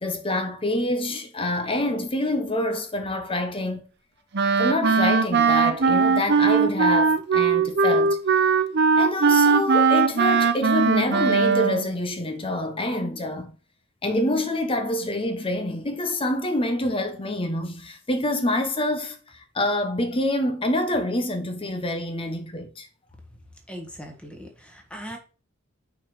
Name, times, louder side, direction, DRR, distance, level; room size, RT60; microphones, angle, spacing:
voice 1, 0.0-3.8 4.6-8.4 9.0-13.6 14.0-22.9, left 1 dB, 25° left, 1.0 m, -26 dB
Wind instrument woodwind instrument, 4.3-11.9, right 5 dB, 50° right, 0.7 m, -20 dB
voice 2, 23.7-25.2, equal, 5° left, 1.6 m, -39 dB
5.7 x 4.7 x 4.8 m
head